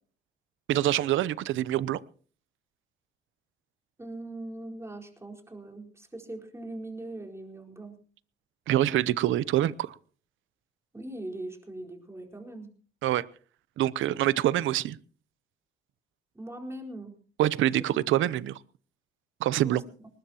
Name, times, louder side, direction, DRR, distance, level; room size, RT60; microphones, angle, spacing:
voice 1, 0.7-2.0 8.7-9.9 13.0-13.2 13.8-15.0 17.4-18.6 19.4-19.8, right 13 dB, 80° right, 0.7 m, -25 dB
voice 2, 4.0-8.0 10.9-12.7 16.3-17.1 19.6-19.8, right 1 dB, 15° right, 4.4 m, -41 dB
20.5 x 19.5 x 2.9 m
cardioid pair, 90°, 20 cm